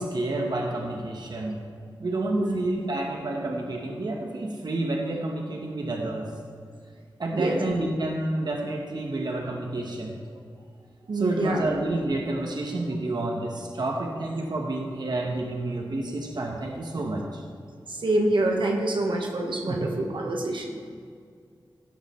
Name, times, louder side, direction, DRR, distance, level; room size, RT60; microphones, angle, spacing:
voice 1, 0.0-1.6 2.0-6.3 7.2-10.1 11.1-17.4 19.7-19.9, right 2 dB, 60° right, 0 dB, 1.1 m, -29 dB
voice 2, 7.3-7.6 11.1-11.7 17.9-20.8, right 2 dB, 75° right, 1 dB, 1.3 m, -26 dB
16.5 x 6.3 x 3.2 m, 2.2 s
cardioid pair, 50°, 8 cm